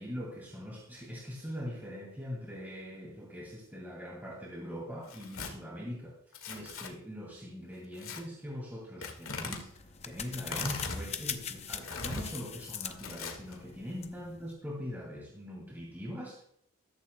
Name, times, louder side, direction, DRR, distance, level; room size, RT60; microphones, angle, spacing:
voice 1, 0.0-6.2 6.5-9.7 10.0-16.4, equal, 10° right, -4 dB, 2.4 m, -42 dB
Tearing, 5.0-5.5 6.3-6.9 8.0-8.2 9.0-9.6 10.4-11.0 11.8-12.2 13.0-13.6, left 4 dB, 85° left, 1.9 m, -39 dB
sound 1, 9.2-14.6, left 8 dB, 30° left, 0.6 m, -42 dB
14.0 x 13.5 x 2.2 m, 0.67 s
head